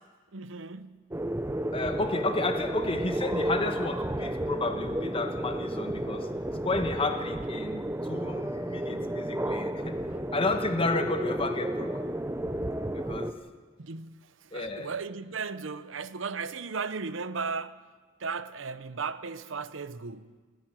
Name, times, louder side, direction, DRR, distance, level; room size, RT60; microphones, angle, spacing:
voice 1, 0.3-1.1 13.8-17.9 18.2-20.4, right 5 dB, 85° right, 0.8 m, -36 dB
sound 1, 1.1-13.3, right 1 dB, 15° right, 0.7 m, -32 dB
voice 2, 1.7-6.3 6.6-10.0 10.3-12.1 12.9-13.4 14.5-14.9, left 2 dB, 30° left, 1.4 m, -31 dB
28.5 x 10.5 x 9.1 m
head